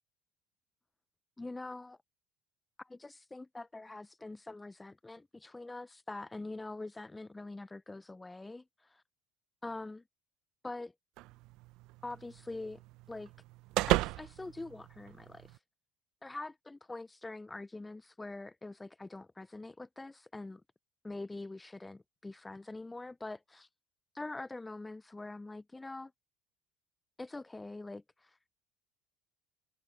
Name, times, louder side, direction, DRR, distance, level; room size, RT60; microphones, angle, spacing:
voice 1, 1.4-2.0 2.8-9.0 9.6-10.0 10.6-10.9 12.0-12.8 13.1-13.3 13.9-15.6 16.2-20.6 21.0-23.7 24.1-26.1 27.2-28.4, left 2 dB, 15° left, 0.6 m, -44 dB
sound 1, 11.2-15.6, right 19 dB, 65° right, 0.6 m, -36 dB
hypercardioid pair, 75°, 0 cm